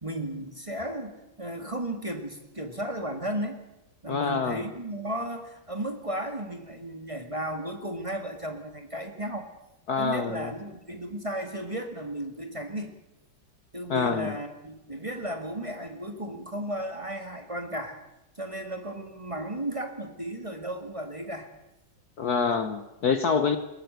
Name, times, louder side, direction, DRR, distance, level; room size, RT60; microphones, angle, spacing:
voice 1, 0.0-3.6 4.0-9.5 10.0-12.9 13.7-18.0 18.4-21.5 23.4-23.5, right 1 dB, 15° right, 5 dB, 1.9 m, -34 dB
voice 2, 4.1-4.6 9.9-10.5 13.9-14.4 22.2-23.6, left 5 dB, 55° left, 11 dB, 1.4 m, -26 dB
21.5 x 17.5 x 8.1 m, 0.94 s
omnidirectional pair, 2.3 m